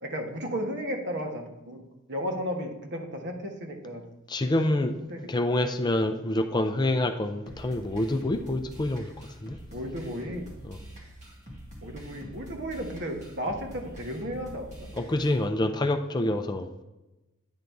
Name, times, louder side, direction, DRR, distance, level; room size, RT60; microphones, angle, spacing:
voice 1, 0.0-1.8 2.1-4.0 5.0-5.2 9.7-10.5 11.8-14.9, equal, 55° right, 2 dB, 1.3 m, -34 dB
voice 2, 4.3-5.0 5.3-9.6 10.7-10.8 15.0-16.7, left 1 dB, 20° left, 7 dB, 0.4 m, -27 dB
sound 1, 7.4-15.4, equal, 35° right, 1.8 m, -45 dB
9.6 x 3.9 x 4.6 m, 1.0 s
head